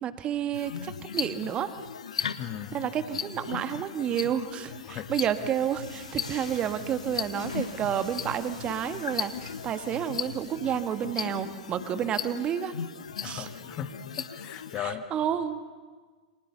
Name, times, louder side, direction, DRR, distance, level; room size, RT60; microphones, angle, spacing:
voice 1, 0.0-1.7 2.7-12.8 13.2-13.5 14.7-15.7, right 9 dB, 30° right, 9 dB, 1.6 m, -30 dB
sound 1, 0.5-14.8, left 7 dB, 70° left, 1.1 m, -37 dB
voice 2, 2.2-2.8 4.9-5.1 13.2-13.9 14.3-15.0, left 10 dB, 35° left, 8 dB, 1.8 m, -37 dB
sound 2, 4.3-11.9, left 3 dB, 85° left, 7.8 m, -48 dB
29.0 x 25.5 x 7.0 m, 1.4 s
figure-of-eight pair, 95°, 4 cm